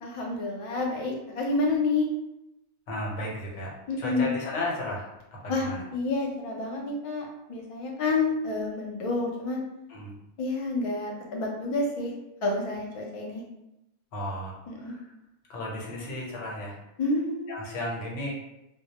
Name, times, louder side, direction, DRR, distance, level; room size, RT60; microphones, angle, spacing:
voice 1, 0.0-2.1 3.9-4.3 5.5-9.6 10.4-12.1 12.4-13.4 14.7-14.9 17.0-17.7, left 3 dB, 60° left, -1 dB, 0.3 m, -29 dB
voice 2, 2.9-3.7 4.0-5.8 9.9-10.1 14.1-15.1 15.5-16.8 17.5-18.3, left 1 dB, 85° left, -2 dB, 1.0 m, -34 dB
2.2 x 2.0 x 2.8 m, 0.89 s
omnidirectional pair, 1.2 m